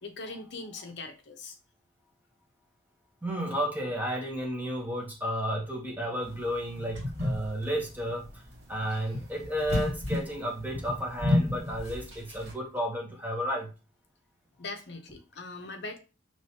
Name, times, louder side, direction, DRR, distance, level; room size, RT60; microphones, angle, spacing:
voice 1, 0.0-1.6 14.6-16.0, left 3 dB, 55° left, 5 dB, 0.7 m, -41 dB
voice 2, 3.2-8.3 8.7-13.7, equal, 10° right, -1 dB, 0.9 m, -32 dB
sound 1, 6.3-12.5, left 1 dB, 65° right, 2.0 m, -32 dB
4.9 x 3.1 x 2.8 m, 0.32 s
head